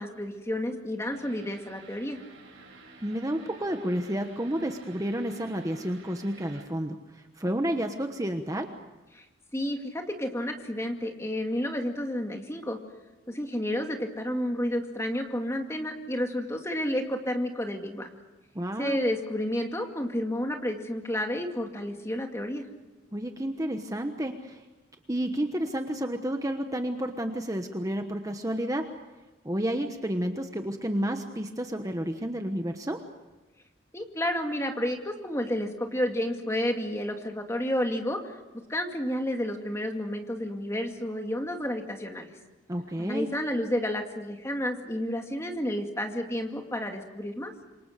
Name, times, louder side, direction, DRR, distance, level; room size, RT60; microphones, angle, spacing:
voice 1, 0.0-2.2 9.1-9.2 9.5-12.8 13.3-18.1 18.8-22.6 33.9-38.4 38.7-42.3 43.0-47.5, left 1 dB, 15° left, 3 dB, 2.2 m, -31 dB
sound 1, 1.1-6.6, right 3 dB, 75° right, 5.2 m, -51 dB
voice 2, 3.0-8.7 18.5-19.0 23.1-24.6 25.1-28.9 29.4-33.0 42.7-43.3, right 1 dB, 15° right, 5 dB, 1.2 m, -31 dB
27.5 x 24.0 x 6.6 m, 1.1 s
head